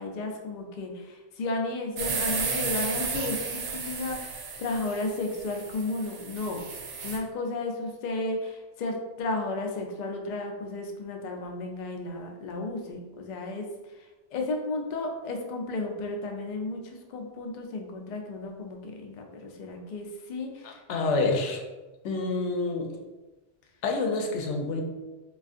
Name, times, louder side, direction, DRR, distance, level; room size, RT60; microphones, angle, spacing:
voice 1, 0.0-6.6 7.0-13.7 14.0-14.1 14.3-20.8, left 2 dB, 60° left, 2 dB, 0.4 m, -33 dB
sound 1, 2.0-7.2, right 5 dB, 80° right, 0.9 m, -33 dB
voice 2, 20.6-21.6 22.0-22.9 23.8-24.8, left 3 dB, 80° left, 2 dB, 0.9 m, -27 dB
3.5 x 2.4 x 2.4 m, 1.2 s
omnidirectional pair, 1.2 m